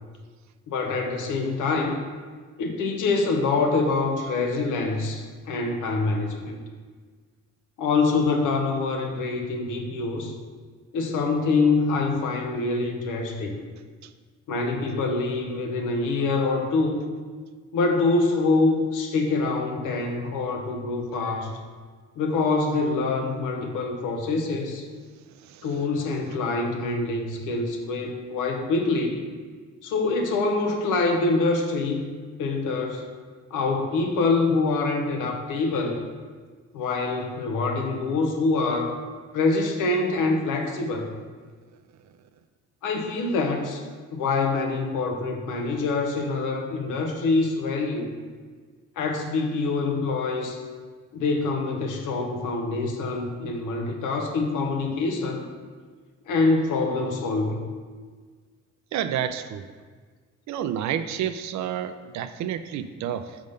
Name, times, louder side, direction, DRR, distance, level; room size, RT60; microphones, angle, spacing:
voice 1, 0.7-2.0 2.6-6.6 7.8-10.3 10.9-13.6 14.5-17.0 17.7-21.5 22.2-24.9 25.6-29.3 29.8-32.1 32.4-33.1 33.5-36.0 36.7-39.0 39.3-41.1 42.8-43.8 44.1-48.1 49.0-50.6 51.1-55.4 56.3-57.7, left 3 dB, 90° left, 4 dB, 0.8 m, -25 dB
voice 2, 25.4-25.9 58.9-59.7 60.5-63.4, right 9 dB, 65° right, 11 dB, 0.4 m, -30 dB
5.1 x 3.6 x 5.3 m, 1.5 s
cardioid pair, 90°, 30 cm